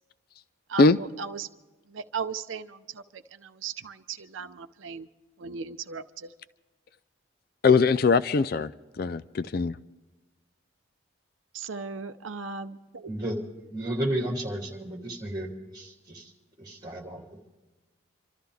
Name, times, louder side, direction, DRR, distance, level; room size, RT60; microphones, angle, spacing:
voice 1, 0.7-1.5 1.9-5.1 5.4-6.3 11.5-13.1, right 5 dB, 75° right, 9 dB, 0.6 m, -37 dB
voice 2, 7.6-8.7 9.0-9.8, left 4 dB, 50° left, 15 dB, 0.4 m, -21 dB
voice 3, 13.1-16.3 16.6-17.2, right 1 dB, 20° right, -1 dB, 3.0 m, -33 dB
27.0 x 13.5 x 3.5 m, 1.2 s
head